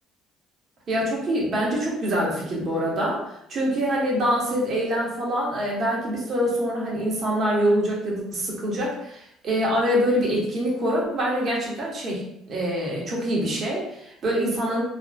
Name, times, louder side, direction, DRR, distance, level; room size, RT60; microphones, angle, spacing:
voice 1, 0.9-12.2 12.5-14.8, equal, 50° right, -4 dB, 0.9 m, -25 dB
2.5 x 2.2 x 2.2 m, 0.76 s
supercardioid pair, 85°, 0 cm